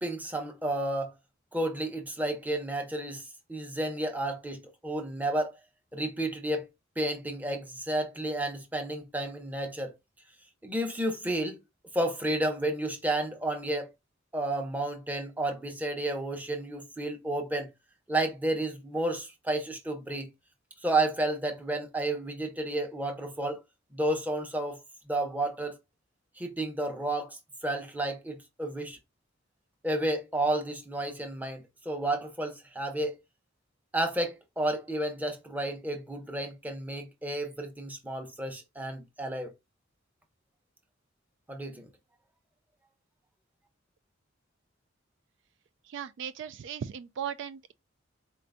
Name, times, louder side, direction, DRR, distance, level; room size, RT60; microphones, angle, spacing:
voice 1, 0.0-1.1 1.5-5.6 5.9-6.7 7.0-9.9 10.6-11.6 11.9-13.9 14.3-17.7 18.1-20.3 20.8-23.6 23.9-24.8 25.1-25.8 26.4-29.0 29.8-33.1 33.9-39.5 41.5-41.9, right 1 dB, 10° right, 0.8 m, -31 dB
voice 2, 45.8-47.7, right 8 dB, 65° right, 0.3 m, -37 dB
4.2 x 3.8 x 2.2 m
head